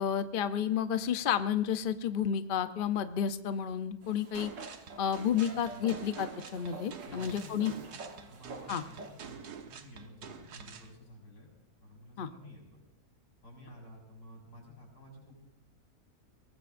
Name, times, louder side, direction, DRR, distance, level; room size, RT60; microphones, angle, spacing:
voice 1, 0.0-4.5 5.0-7.7 8.7-8.8 12.2-12.3, left 8 dB, 50° left, 10 dB, 0.6 m, -31 dB
sound 1, 4.0-9.3, right 3 dB, 50° right, 1.7 m, -48 dB
sound 2, 4.3-10.9, right 7 dB, 80° right, 1.7 m, -47 dB
voice 2, 5.4-6.0 7.0-11.5 11.8-12.8 13.4-15.4, left 1 dB, 80° left, 0 dB, 6.3 m, -52 dB
23.0 x 19.0 x 2.6 m, 0.93 s
omnidirectional pair, 1.7 m